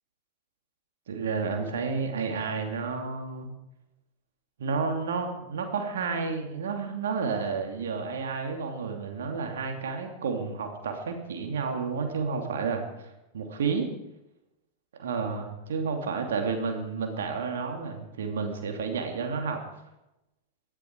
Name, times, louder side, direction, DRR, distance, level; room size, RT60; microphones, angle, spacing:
voice 1, 1.1-3.5 4.6-12.8 13.3-13.9 15.0-19.6, right 5 dB, 60° right, 4 dB, 3.2 m, -31 dB
20.5 x 14.0 x 4.9 m, 0.90 s
figure-of-eight pair, 90°, 0 cm